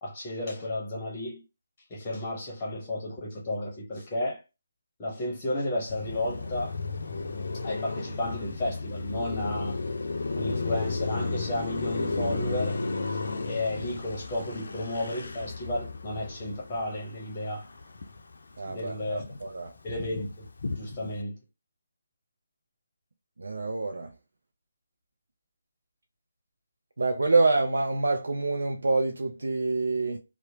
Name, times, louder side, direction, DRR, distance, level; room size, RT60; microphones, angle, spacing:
voice 1, 0.0-1.4 1.9-4.4 5.0-6.8 7.6-9.8 10.3-12.8 13.1-17.6 18.6-19.3 19.8-20.5 20.8-21.4, left 1 dB, 20° left, 0.8 m, -33 dB
Car passing by, 5.9-18.4 18.7-21.2, left 3 dB, 60° left, 0.4 m, -34 dB
voice 2, 18.6-19.7 23.4-24.1 27.0-30.2, right 3 dB, 65° right, 0.4 m, -26 dB
2.8 x 2.0 x 2.8 m
figure-of-eight pair, 150°, 0 cm